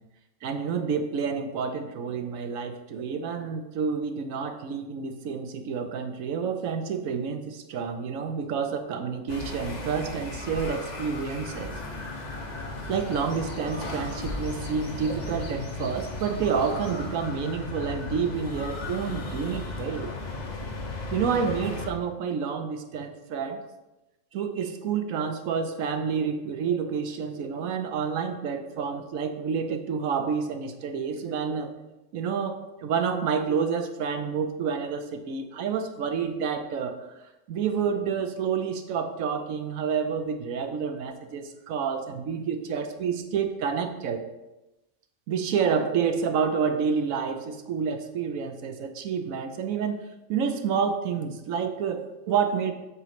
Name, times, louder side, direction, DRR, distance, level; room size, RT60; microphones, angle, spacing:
voice 1, 0.4-11.7 12.9-20.1 21.1-23.6 24.3-31.7 32.1-37.0 37.5-44.2 45.3-50.0 50.3-52.7, right 6 dB, 70° right, 7 dB, 1.1 m, -29 dB
sound 1, 9.3-21.9, left 2 dB, 35° left, 0.9 m, -35 dB
8.2 x 3.1 x 5.8 m, 0.99 s
omnidirectional pair, 1.5 m